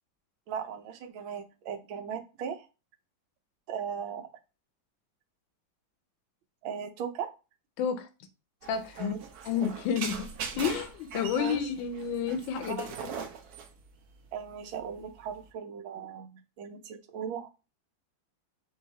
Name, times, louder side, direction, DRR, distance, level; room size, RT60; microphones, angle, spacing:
voice 1, 0.5-2.7 3.7-4.3 6.6-7.3 9.0-9.2 11.4-11.6 12.7-13.0 14.3-17.5, right 7 dB, 85° right, 1.5 m, -38 dB
voice 2, 7.8-8.1 8.7-9.1 9.4-10.3 10.5-13.1, left 7 dB, 80° left, 1.4 m, -30 dB
sound 1, 8.6-15.5, right 6 dB, 65° right, 1.0 m, -41 dB
4.7 x 2.8 x 4.1 m
omnidirectional pair, 2.1 m